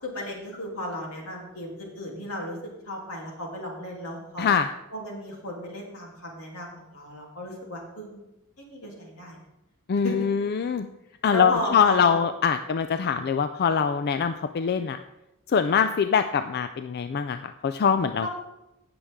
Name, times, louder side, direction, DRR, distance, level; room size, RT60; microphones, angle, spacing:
voice 1, 0.0-2.6 2.8-4.5 4.9-8.2 8.6-9.4 10.0-10.2 11.3-12.2 18.2-18.3, equal, 80° left, -1 dB, 3.0 m, -34 dB
voice 2, 9.9-10.9 11.2-15.0 15.5-18.3, left 6 dB, 45° left, 9 dB, 0.4 m, -23 dB
17.5 x 6.9 x 3.6 m, 0.91 s
head